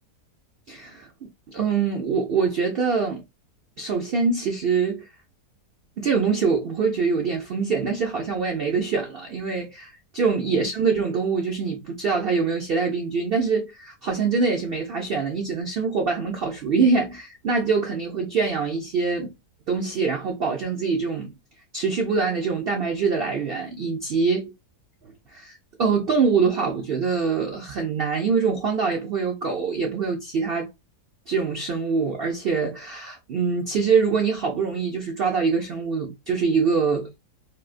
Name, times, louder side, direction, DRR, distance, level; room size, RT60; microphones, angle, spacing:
voice 1, 0.7-3.2 3.8-5.1 6.0-19.3 19.7-21.3 21.7-24.5 25.0-30.7 31.3-37.1, right 5 dB, 80° right, 0.5 m, -24 dB
3.4 x 2.4 x 2.4 m
omnidirectional pair, 1.7 m